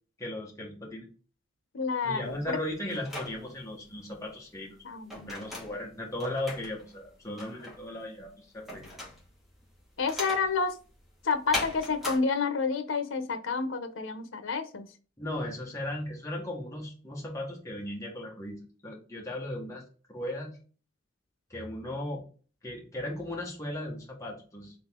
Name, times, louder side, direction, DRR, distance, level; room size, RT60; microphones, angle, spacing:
voice 1, 0.2-1.1 2.0-4.8 5.1-8.8 15.2-19.8 20.1-20.6 21.5-22.2 22.6-24.7, left 1 dB, 15° left, -2 dB, 1.3 m, -37 dB
voice 2, 1.7-2.6 4.8-5.4 10.0-10.7 11.2-14.9, left 4 dB, 80° left, 9 dB, 0.7 m, -29 dB
sound 1, 2.2-12.2, left 2 dB, ahead, 1.3 m, -40 dB
3.9 x 3.6 x 3.6 m, 0.38 s
head